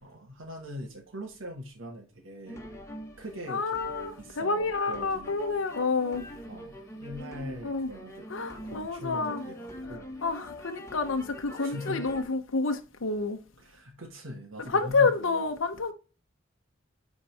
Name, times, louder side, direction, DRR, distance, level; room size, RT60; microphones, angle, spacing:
voice 1, 0.0-2.6 3.2-3.7 4.2-5.4 6.4-8.3 8.6-10.1 11.5-12.1 13.6-15.4, equal, 75° right, 1.7 m, -41 dB
sound 1, 2.5-12.2, equal, 15° left, 1.4 m, -44 dB
voice 2, 3.5-6.2 7.6-7.9 8.3-9.4 10.2-13.4 14.7-15.9, left 4 dB, 75° left, 0.8 m, -29 dB
9.8 x 4.0 x 3.3 m
head